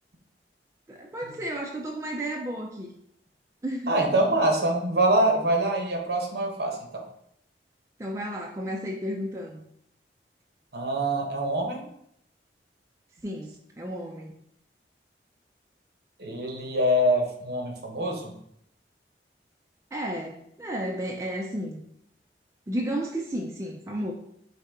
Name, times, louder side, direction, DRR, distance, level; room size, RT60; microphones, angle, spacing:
voice 1, 0.9-2.9 3.6-3.9 8.0-9.7 13.2-14.4 19.9-21.8 22.7-24.1, equal, 15° right, 0 dB, 0.3 m, -33 dB
voice 2, 3.9-7.0 10.7-11.8 16.2-18.3, right 1 dB, 65° right, 2 dB, 0.8 m, -25 dB
4.7 x 2.7 x 3.5 m, 0.73 s
head